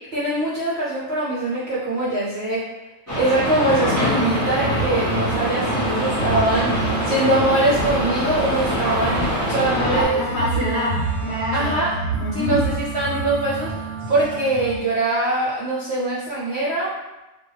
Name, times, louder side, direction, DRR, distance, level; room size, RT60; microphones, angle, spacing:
voice 1, 0.1-2.6 3.2-10.2 11.5-12.0 12.3-16.9, right 2 dB, 65° right, -8 dB, 0.6 m, -23 dB
sound 1, 3.1-10.1, left 1 dB, 15° right, 0.6 m, -24 dB
sound 2, 3.4-14.8, right 4 dB, 90° right, 1.1 m, -29 dB
voice 2, 9.7-11.8 12.2-12.6, left 1 dB, 55° left, -7 dB, 0.9 m, -25 dB
2.5 x 2.2 x 3.0 m, 1.0 s
omnidirectional pair, 1.6 m